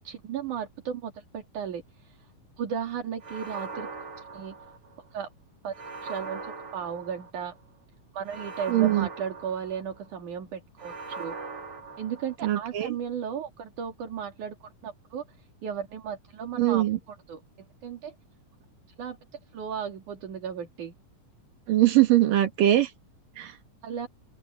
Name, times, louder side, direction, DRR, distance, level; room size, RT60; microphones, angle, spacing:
voice 1, 0.0-2.3 2.6-3.9 4.2-4.6 5.1-5.3 5.6-5.7 6.0-7.6 8.1-11.4 12.0-17.4 17.8-18.2 19.0-19.2 19.5-20.9 23.8-24.1, right 7 dB, 70° right, 3.9 m, -35 dB
sound 1, 3.2-5.1 5.7-7.5 8.2-10.1 10.8-12.7, right 4 dB, 45° right, 3.5 m, -40 dB
voice 2, 8.7-9.1 12.4-12.9 16.6-17.0 21.7-22.9 23.4-23.5, right 14 dB, 90° right, 3.4 m, -21 dB
open air
omnidirectional pair, 3.8 m